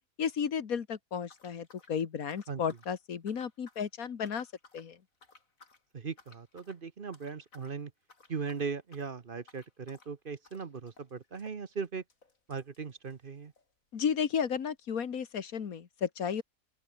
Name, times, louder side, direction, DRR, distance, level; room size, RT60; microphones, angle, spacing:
voice 1, 0.2-4.5 4.7-5.0 13.9-16.4, left 7 dB, 90° left, 1.9 m, -33 dB
sound 1, 1.2-3.0 3.3-3.9 4.2-4.9 5.2-5.8 6.2-6.8 7.1-7.8 8.0-13.7 14.0-14.1 14.3-14.4 15.1-15.2, left 3 dB, 70° left, 3.6 m, -60 dB
voice 2, 5.9-7.9 8.3-12.0 12.5-13.5, right 5 dB, 40° right, 1.1 m, -38 dB
open air
omnidirectional pair, 1.5 m